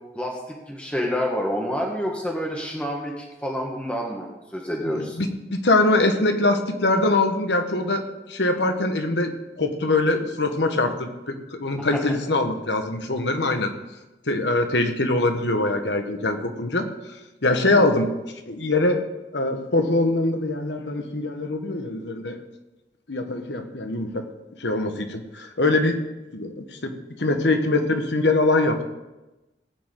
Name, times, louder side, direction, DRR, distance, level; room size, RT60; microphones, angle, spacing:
voice 1, 0.1-5.2 17.7-17.9, equal, 5° left, -1 dB, 1.5 m, -28 dB
voice 2, 4.8-13.7 14.3-16.9 17.4-18.1 18.5-19.0 19.3-22.4 23.1-24.2 24.6-26.0 26.3-28.8, left 2 dB, 80° left, 6 dB, 1.3 m, -23 dB
18.0 x 9.0 x 3.8 m, 1.0 s
head